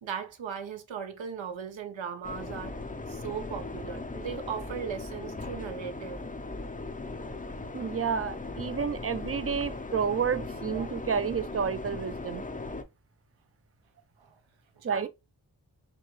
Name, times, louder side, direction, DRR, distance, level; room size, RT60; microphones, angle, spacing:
voice 1, 0.0-2.8 3.1-6.3 10.7-10.9 14.2-14.4 14.8-15.1, right 7 dB, 80° right, 0.8 m, -38 dB
sound 1, 2.2-12.8, left 3 dB, 20° left, 0.5 m, -38 dB
voice 2, 7.7-12.4 14.8-15.1, right 6 dB, 30° right, 0.5 m, -30 dB
4.6 x 2.7 x 3.1 m
wide cardioid pair, 60°, 45 cm